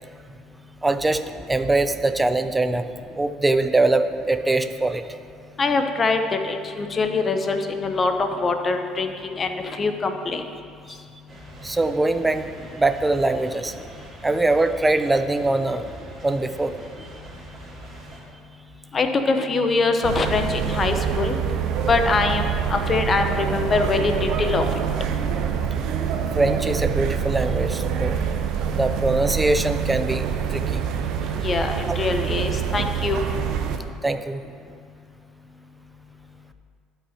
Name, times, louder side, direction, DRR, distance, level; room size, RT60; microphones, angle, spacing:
voice 1, 0.8-1.2 1.5-2.8 3.2-5.1 11.6-12.5 12.8-13.7 14.2-15.9 16.2-16.7 26.3-28.2 28.7-30.2 30.5-30.8 31.8-32.0 34.0-34.4, right 2 dB, 10° right, 10 dB, 0.5 m, -22 dB
voice 2, 5.6-10.5 18.9-21.4 21.9-24.8 31.3-33.2, left 3 dB, 30° left, 6 dB, 0.8 m, -23 dB
sound 1, 11.3-18.2, right 1 dB, 30° right, 2.3 m, -43 dB
sound 2, 20.0-33.8, right 7 dB, 65° right, 0.7 m, -25 dB
12.0 x 5.7 x 4.3 m, 2.2 s
supercardioid pair, 100°, 0 cm